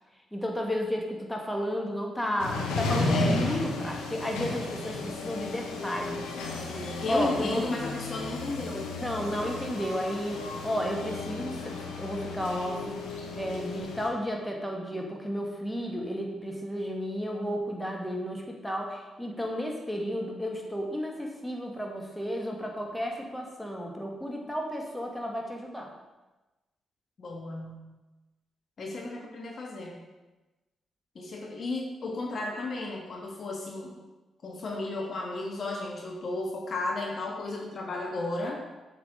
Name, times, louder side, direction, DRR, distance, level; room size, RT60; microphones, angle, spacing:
voice 1, 0.3-7.6 9.0-25.9, equal, 10° left, 0 dB, 1.6 m, -33 dB
sound 1, 2.4-14.1, left 2 dB, 85° left, 1.0 m, -33 dB
voice 2, 3.1-3.5 6.7-9.0 27.2-27.9 28.8-30.0 31.1-33.9 34.4-38.6, left 2 dB, 55° left, 0 dB, 1.5 m, -34 dB
7.4 x 5.8 x 3.8 m, 1.1 s
hypercardioid pair, 45°, 0 cm